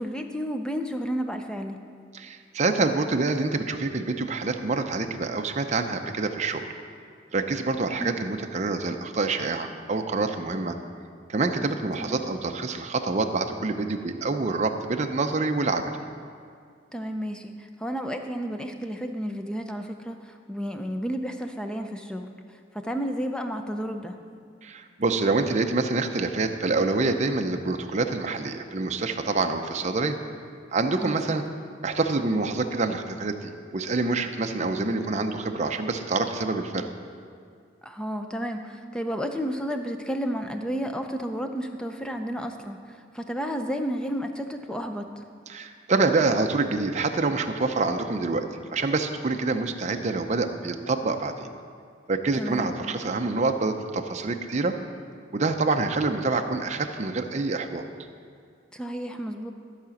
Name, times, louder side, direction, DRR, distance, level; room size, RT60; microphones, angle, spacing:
voice 1, 0.0-1.8 8.0-8.2 11.6-11.7 12.0-12.2 16.9-22.3 22.7-24.2 31.0-31.2 37.8-45.2 52.4-52.7 58.7-59.5, equal, 5° left, 5 dB, 0.6 m, -32 dB
voice 2, 2.1-6.7 7.3-10.8 11.3-15.9 24.6-30.2 30.7-31.4 31.8-36.9 45.5-51.5 52.1-54.8 55.3-57.8, right 3 dB, 40° right, 5 dB, 0.5 m, -26 dB
13.5 x 5.0 x 7.1 m, 2.2 s
head